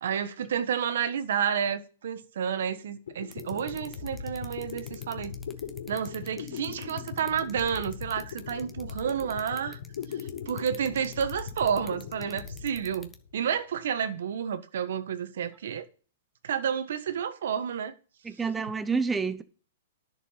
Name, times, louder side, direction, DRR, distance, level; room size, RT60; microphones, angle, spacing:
voice 1, 0.0-5.4 5.9-9.8 10.1-15.9 16.4-17.9, right 8 dB, 70° right, 1.3 m, -30 dB
sound 1, 2.8-2.9 3.1-13.5, left 7 dB, 80° left, 4.0 m, -40 dB
sound 2, 3.3-13.2, left 4 dB, 10° left, 1.1 m, -48 dB
voice 2, 18.2-19.4, right 5 dB, 10° right, 0.7 m, -28 dB
10.5 x 6.9 x 5.8 m
hypercardioid pair, 150°, 0 cm